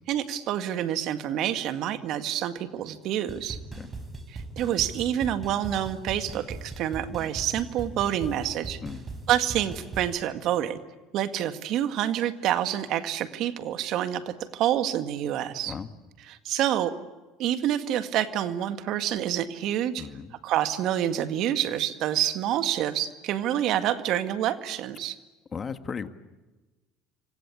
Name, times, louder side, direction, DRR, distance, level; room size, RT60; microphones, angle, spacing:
voice 1, 0.1-3.6 4.3-8.8 9.3-10.8 11.1-15.8 16.3-16.9 17.4-20.1 20.4-25.2, right 11 dB, 60° right, 10 dB, 1.9 m, -27 dB
sound 1, 3.3-10.1, right 3 dB, 30° right, 5.9 m, -39 dB
voice 2, 20.0-20.4 25.5-26.1, left 6 dB, 35° left, 10 dB, 1.8 m, -36 dB
28.5 x 25.0 x 8.5 m, 1.2 s
hypercardioid pair, 80°, 0 cm